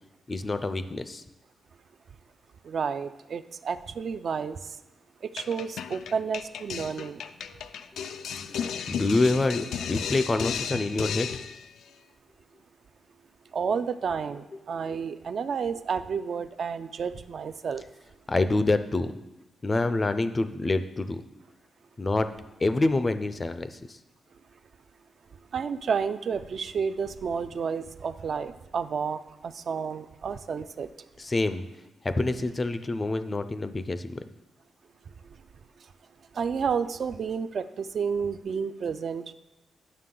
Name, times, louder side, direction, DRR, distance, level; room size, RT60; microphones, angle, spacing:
voice 1, 0.3-1.2 8.5-11.3 18.3-19.1 19.6-21.2 22.0-22.3 22.6-24.0 31.2-31.7 32.0-34.2, left 2 dB, 25° left, 11 dB, 0.4 m, -27 dB
voice 2, 2.6-4.6 5.3-7.2 13.5-17.8 25.5-30.9 36.4-39.3, right 6 dB, 50° right, 11 dB, 0.3 m, -31 dB
sound 1, 5.4-11.7, left 7 dB, 90° left, 0.3 m, -34 dB
9.3 x 6.4 x 3.8 m, 1.0 s
wide cardioid pair, 145°, 0 cm